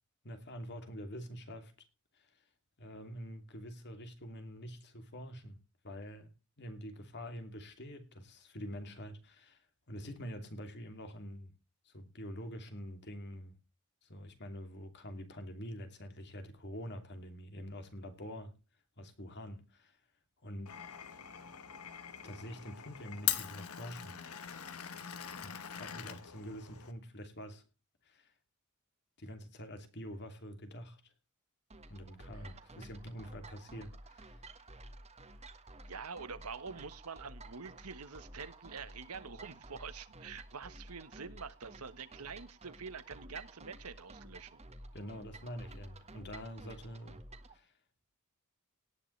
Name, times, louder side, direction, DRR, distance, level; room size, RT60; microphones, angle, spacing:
voice 1, 0.2-1.7 2.1-2.3 2.8-5.6 5.8-6.3 6.6-9.6 9.9-11.5 11.8-13.6 14.0-18.5 19.0-20.0 20.4-20.7 22.2-24.2 25.4-27.6 28.0-28.3 29.2-31.1 31.9-34.4 44.9-47.2 47.5-47.7, equal, 50° left, 2.8 m, -46 dB
Glass, 20.7-26.9, left 11 dB, 80° left, 1.3 m, -41 dB
sound 1, 31.7-47.5, right 2 dB, 30° right, 1.6 m, -52 dB
voice 2, 35.9-44.6, right 5 dB, 85° right, 1.3 m, -46 dB
18.0 x 9.9 x 3.3 m
head